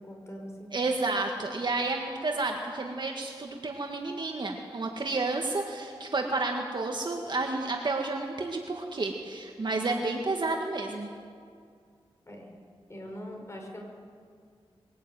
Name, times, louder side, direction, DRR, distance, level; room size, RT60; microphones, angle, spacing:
voice 1, 0.0-0.7 12.3-12.5 12.9-13.8, equal, 30° left, 2 dB, 5.0 m, -42 dB
voice 2, 0.7-11.1, right 3 dB, 50° right, 2 dB, 1.8 m, -31 dB
22.5 x 17.5 x 9.3 m, 2.2 s
wide cardioid pair, 100°, 10 cm